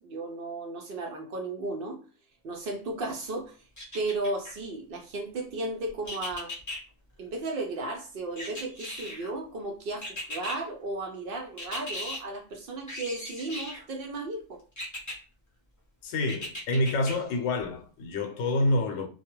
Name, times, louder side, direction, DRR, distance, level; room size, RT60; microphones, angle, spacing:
voice 1, 0.0-2.0 2.4-3.6 3.9-6.5 7.2-14.6, right 2 dB, 65° right, 0.6 m, -34 dB
sound 1, 3.8-4.5 6.1-6.8 8.4-9.3 10.0-10.6 11.6-12.2 12.9-13.8 14.8-15.2 16.3-17.1 17.6-17.7, left 1 dB, 20° left, 0.5 m, -37 dB
voice 2, 16.0-19.1, left 2 dB, 75° left, 0.9 m, -27 dB
2.3 x 2.2 x 2.9 m
omnidirectional pair, 1.3 m